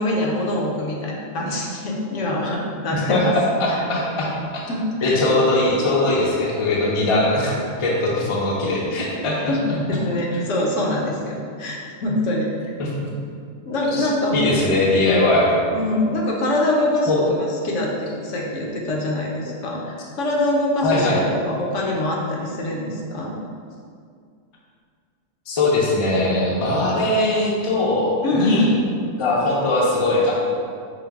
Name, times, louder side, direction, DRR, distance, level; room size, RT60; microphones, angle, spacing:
voice 1, 0.0-3.3 3.7-3.8 4.7-5.2 9.5-12.5 13.6-14.5 15.7-23.3 28.2-28.7, left 1 dB, 70° left, -2 dB, 1.0 m, -24 dB
voice 2, 2.9-4.7 5.0-9.5 12.8-12.9 13.9-14.1 14.3-15.5 17.1-17.2 20.8-21.2 25.5-28.7 29.2-30.4, left 2 dB, 40° left, -4 dB, 0.4 m, -20 dB
5.1 x 2.0 x 3.4 m, 2.2 s
omnidirectional pair, 1.3 m